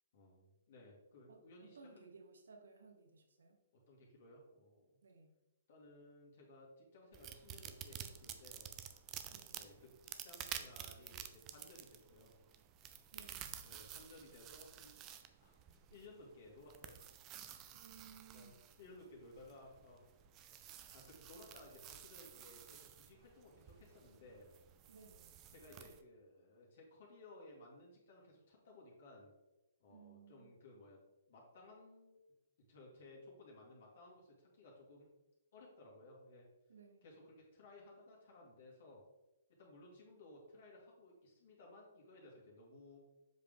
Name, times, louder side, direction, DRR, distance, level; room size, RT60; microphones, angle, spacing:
voice 1, 0.1-2.1 3.9-4.9 5.7-8.7 9.5-12.3 13.6-14.9 15.4-17.1 17.9-18.5 18.8-20.0 20.9-24.5 25.5-29.3 29.8-31.0 31.3-32.2 32.7-35.1 35.5-36.5 37.0-39.0 39.6-43.0, left 2 dB, 55° left, -2 dB, 2.0 m, -59 dB
voice 2, 1.3-3.6 5.0-5.3 9.3-9.7 13.1-13.6 17.7-18.7 24.9-25.4 29.9-30.6 36.7-37.1, right 5 dB, 70° right, 5 dB, 1.0 m, -60 dB
sound 1, 7.1-26.0, right 10 dB, 30° right, 0.6 m, -52 dB
7.4 x 5.2 x 3.7 m, 1.0 s
figure-of-eight pair, 125°, 0 cm